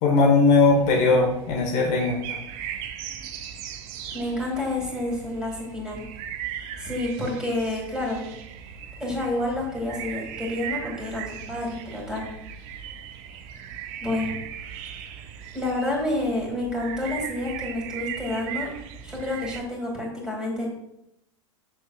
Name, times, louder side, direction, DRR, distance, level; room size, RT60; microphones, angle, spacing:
voice 1, 0.0-2.4, left 3 dB, 45° left, 0 dB, 1.1 m, -19 dB
sound 1, 0.6-19.6, right 8 dB, 45° right, 0.7 m, -38 dB
voice 2, 4.1-6.0 6.8-8.2 9.0-12.2 14.0-14.4 15.5-18.7 19.0-20.7, left 1 dB, 5° right, -1 dB, 2.3 m, -29 dB
6.6 x 6.2 x 2.3 m, 0.81 s
figure-of-eight pair, 90°, 17 cm